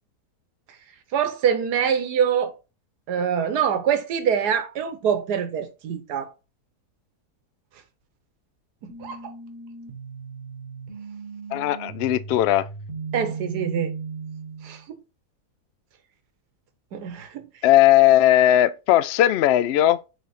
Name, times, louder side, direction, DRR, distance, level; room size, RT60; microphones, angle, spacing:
voice 1, 1.1-2.5 3.1-6.3 8.8-9.2 13.1-13.9 14.6-15.0 16.9-17.5, right 8 dB, 90° right, 1.4 m, -24 dB
sound 1, 8.9-14.8, right 5 dB, 60° right, 2.3 m, -36 dB
voice 2, 11.5-12.7 17.6-20.0, left 13 dB, 75° left, 0.6 m, -18 dB
10.0 x 3.4 x 4.1 m
omnidirectional pair, 1.7 m